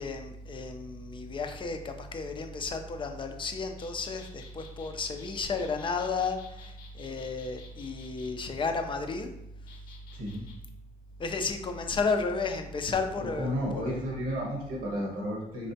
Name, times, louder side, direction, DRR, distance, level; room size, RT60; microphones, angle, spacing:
voice 1, 0.0-9.3 11.2-14.0, left 4 dB, 35° left, 6 dB, 0.6 m, -33 dB
sound 1, 3.8-8.3 9.7-10.5, left 5 dB, 90° left, 0.9 m, -53 dB
voice 2, 10.1-10.5 13.2-15.7, equal, 90° right, -3 dB, 1.4 m, -33 dB
4.8 x 3.3 x 2.8 m, 0.82 s
cardioid pair, 95°, 14 cm